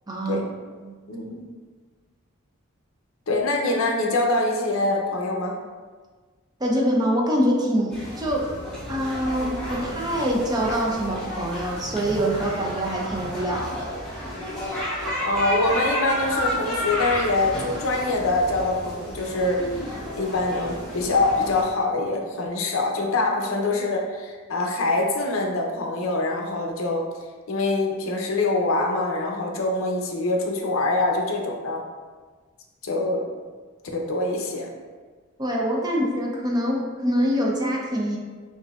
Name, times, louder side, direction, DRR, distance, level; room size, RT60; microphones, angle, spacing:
voice 1, 0.1-0.4 0.8-0.9 6.6-8.5 8.9-13.9 35.4-38.2, equal, 20° right, -2 dB, 0.6 m, -25 dB
voice 2, 1.1-1.5 3.3-5.6 15.2-19.7 20.2-27.0 27.5-31.8 32.8-33.3 33.9-34.7, left 2 dB, 75° left, 1 dB, 0.6 m, -24 dB
sound 1, 7.9-21.6, equal, 5° left, 0.9 m, -31 dB
5.7 x 2.7 x 2.3 m, 1.4 s
head